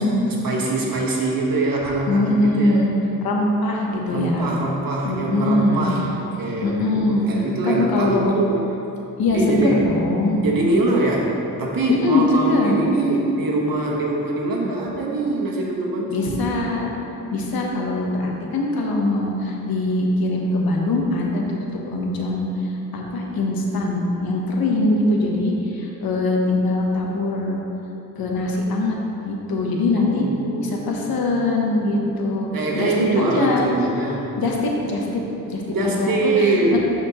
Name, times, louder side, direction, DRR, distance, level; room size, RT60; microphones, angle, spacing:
voice 1, 0.3-2.8 4.1-8.7 9.3-9.8 10.4-16.4 30.0-32.0 32.5-34.3 35.7-36.8, right 2 dB, 75° right, -3 dB, 1.3 m, -23 dB
voice 2, 2.1-2.9 3.2-4.5 5.0-5.9 6.6-7.3 7.6-8.3 9.2-10.4 11.9-12.7 16.1-16.9 17.3-22.5 22.9-27.6 28.2-29.0 29.2-30.3 30.6-32.5 32.7-33.7 34.4-35.2 35.5-36.8, left 2 dB, 85° left, -1 dB, 1.0 m, -22 dB
11.5 x 4.3 x 3.0 m, 3.0 s
cardioid pair, 90°, 35 cm